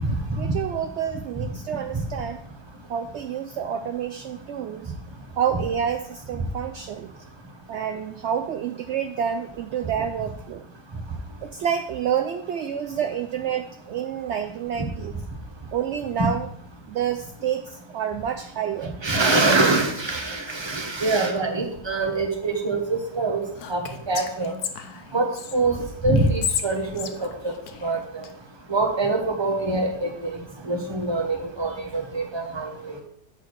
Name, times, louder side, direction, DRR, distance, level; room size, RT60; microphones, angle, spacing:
voice 1, 0.4-2.4 2.9-4.9 5.4-7.1 7.7-10.6 11.4-15.1 15.7-16.5 16.9-19.0, right 8 dB, 70° right, 7 dB, 0.6 m, -28 dB
voice 2, 19.0-23.4 23.7-24.6 25.1-27.5 27.8-28.3 28.7-30.4 30.6-33.0, right 3 dB, 20° right, 4 dB, 1.1 m, -24 dB
Whispering, 23.6-25.6 26.2-28.3, left 8 dB, 75° left, 1.2 m, -32 dB
7.9 x 4.5 x 6.3 m, 0.68 s
omnidirectional pair, 1.7 m